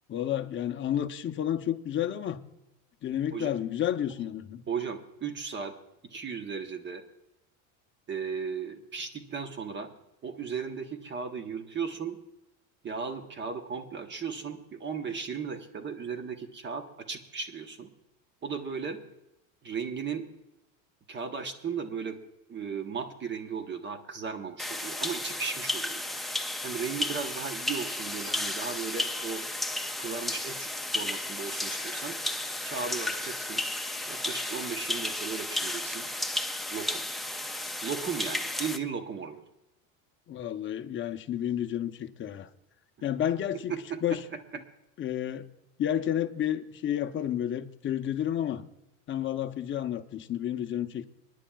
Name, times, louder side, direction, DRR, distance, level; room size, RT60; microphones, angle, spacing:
voice 1, 0.1-2.4 3.0-4.6 40.3-42.5 43.0-43.7 44.0-44.2 45.0-45.5 45.8-48.6 49.1-51.1, left 10 dB, 30° left, 0.7 m, -31 dB
voice 2, 4.7-5.7 6.1-7.0 8.1-9.9 10.2-12.2 12.8-17.9 18.4-19.0 19.6-20.2 21.1-22.2 22.5-26.0 26.6-29.4 30.0-30.7 30.9-32.2 32.6-33.6 34.1-36.1 36.7-37.0 37.8-39.4 43.7-44.2, right 6 dB, 25° right, 1.0 m, -36 dB
sound 1, 24.6-38.8, left 1 dB, ahead, 0.3 m, -33 dB
26.0 x 10.0 x 2.3 m
supercardioid pair, 130°, 41 cm